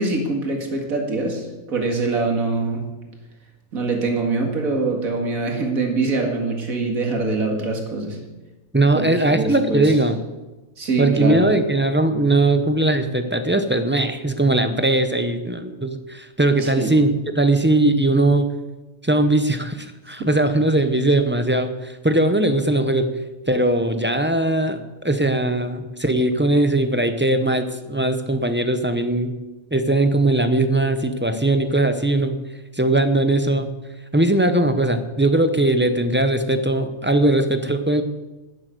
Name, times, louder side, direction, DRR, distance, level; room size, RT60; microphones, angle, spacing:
voice 1, 0.0-2.8 3.7-8.2 8.9-9.9 10.8-11.5 16.6-17.0 20.2-20.3, right 3 dB, 75° right, 2 dB, 2.4 m, -24 dB
voice 2, 8.7-10.2 11.0-18.5 19.0-23.1 23.5-29.4 29.7-32.4 32.7-33.7 34.1-38.0, right 2 dB, 15° right, 8 dB, 0.4 m, -20 dB
11.5 x 7.9 x 7.8 m, 1.1 s
omnidirectional pair, 1.5 m